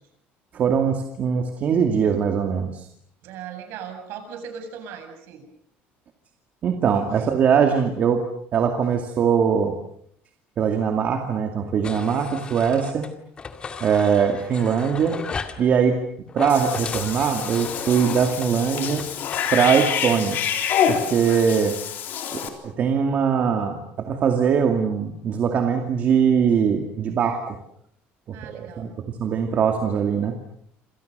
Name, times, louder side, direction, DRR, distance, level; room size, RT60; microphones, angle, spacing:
voice 1, 0.5-2.9 6.6-8.3 8.5-9.8 10.6-13.1 13.8-15.2 15.6-16.0 16.3-19.0 19.5-20.4 20.9-21.8 22.3-27.6 28.3-28.9 29.2-30.4, right 7 dB, 35° right, 4 dB, 2.3 m, -21 dB
voice 2, 3.2-5.5 7.1-7.3 28.3-28.9, right 7 dB, 60° right, 7 dB, 7.5 m, -38 dB
sound 1, 11.8-13.1 13.4-15.6 16.3-19.6, left 5 dB, 20° left, 2.1 m, -36 dB
Cat / Bathtub (filling or washing), 16.5-22.5, left 8 dB, 45° left, 3.8 m, -27 dB
28.5 x 27.5 x 6.7 m, 0.68 s
cardioid pair, 170°, 4 cm